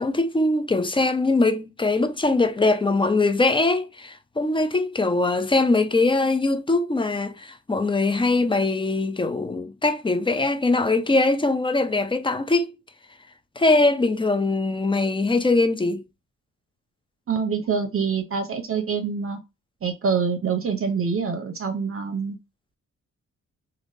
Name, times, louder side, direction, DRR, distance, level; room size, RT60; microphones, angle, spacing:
voice 1, 0.0-12.7 13.6-16.0, left 2 dB, 15° left, 0.4 m, -22 dB
voice 2, 17.3-19.4 19.8-22.4, right 6 dB, 45° right, 0.6 m, -25 dB
3.2 x 2.5 x 2.6 m
wide cardioid pair, 125°, 31 cm